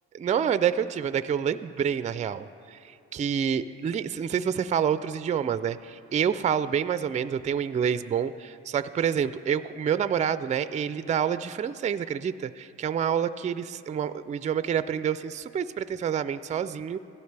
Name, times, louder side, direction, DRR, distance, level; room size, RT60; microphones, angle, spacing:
voice 1, 0.1-17.0, right 8 dB, 25° right, 14 dB, 0.3 m, -28 dB
16.0 x 12.5 x 3.3 m, 2.6 s
cardioid pair, 90°, 30 cm